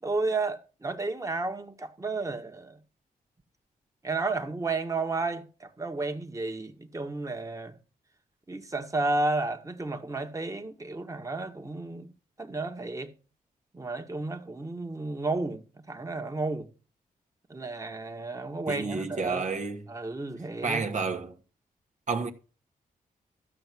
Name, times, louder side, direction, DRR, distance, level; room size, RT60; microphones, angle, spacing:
voice 1, 0.0-2.8 4.0-7.8 8.5-12.1 12.4-13.1 13.7-16.7 17.5-19.5 19.9-20.8, right 3 dB, 20° right, 1.6 m, -32 dB
voice 2, 18.7-19.9 20.6-21.4 22.1-22.3, right 4 dB, 55° right, 1.4 m, -30 dB
13.5 x 6.4 x 6.2 m
cardioid pair, 75°, 16 cm